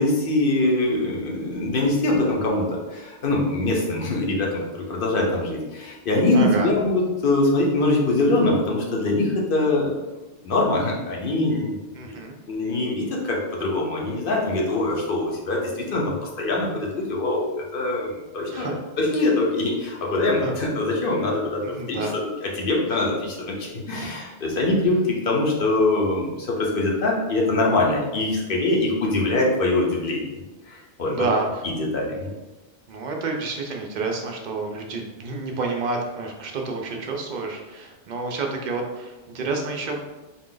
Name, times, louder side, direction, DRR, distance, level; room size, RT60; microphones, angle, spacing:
voice 1, 0.0-10.0 10.4-11.8 12.0-12.2 12.5-17.5 17.7-30.3 30.7-31.3 31.6-32.3, left 2 dB, 50° left, -2 dB, 0.9 m, -23 dB
voice 2, 6.3-6.7 11.9-12.3 18.5-18.8 20.4-20.5 21.8-22.1 23.9-24.1 31.0-31.5 32.9-40.0, right 3 dB, 50° right, 1 dB, 0.6 m, -29 dB
3.9 x 2.5 x 3.8 m, 1.1 s
omnidirectional pair, 1.2 m